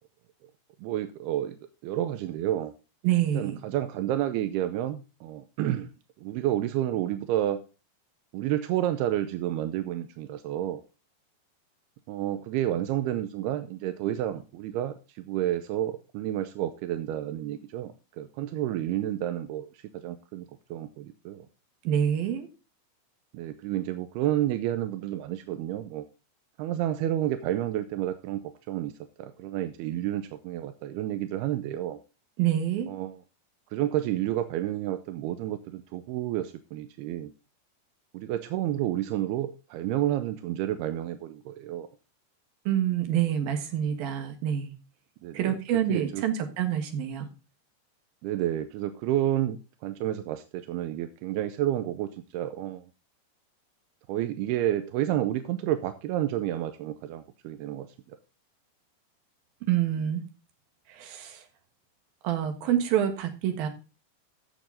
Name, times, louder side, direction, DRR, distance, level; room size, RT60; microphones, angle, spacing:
voice 1, 0.8-1.6 1.8-2.7 3.3-5.9 6.2-7.6 8.3-10.8 12.1-20.5 20.7-21.5 23.3-26.0 26.6-28.9 29.2-32.0 32.9-33.2 33.7-37.3 38.1-41.9 45.2-45.6 45.9-46.2 48.2-52.8 54.1-57.9, right 12 dB, 80° right, 10 dB, 2.4 m, -30 dB
voice 2, 3.0-3.6 21.8-22.5 32.4-32.9 42.7-44.7 45.3-47.3 59.6-60.2 60.9-61.4 62.2-63.7, right 10 dB, 65° right, 6 dB, 3.0 m, -27 dB
13.5 x 7.0 x 3.9 m, 0.31 s
omnidirectional pair, 5.2 m